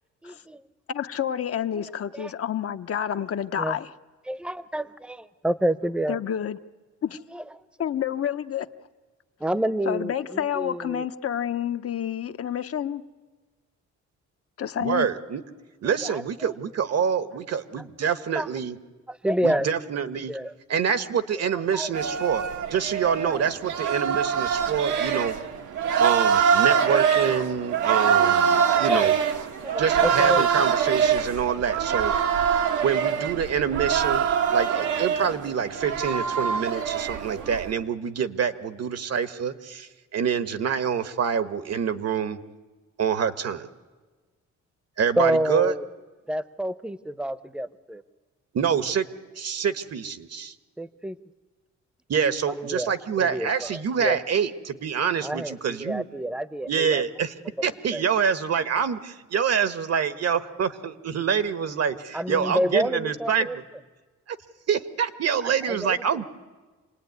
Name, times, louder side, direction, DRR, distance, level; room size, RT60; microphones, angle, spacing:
voice 1, 0.2-0.6 1.7-1.8 2.1-2.3 3.6-3.8 4.3-6.2 7.3-7.4 9.4-11.1 15.8-16.5 17.8-18.5 19.1-19.7 20.3-20.6 21.4-22.2 23.2-23.4 28.6-29.1 29.6-30.5 45.2-45.8 46.3-48.0 50.8-51.2 52.5-52.9 53.2-54.2 55.2-57.0 57.6-58.1 62.1-63.6 65.4-66.2, right 1 dB, 5° right, 15 dB, 0.9 m, -29 dB
voice 2, 0.9-3.9 6.1-6.6 7.0-7.2 7.8-8.7 9.9-13.0 14.6-15.1, left 9 dB, 50° left, 9 dB, 0.9 m, -29 dB
voice 3, 14.8-15.4 15.8-18.8 19.4-20.3 20.7-25.3 26.0-29.1 29.8-32.1 32.8-34.3 34.5-42.4 43.0-43.7 45.0-45.7 48.5-49.1 49.3-50.5 52.1-56.0 56.7-57.3 57.6-63.5 64.3-64.4 64.7-66.2, right 7 dB, 55° right, 12 dB, 1.4 m, -26 dB
sound 1, 21.9-37.7, right 7 dB, 80° right, 1.9 m, -24 dB
27.0 x 18.5 x 9.6 m, 1.3 s
cardioid pair, 90°, 30 cm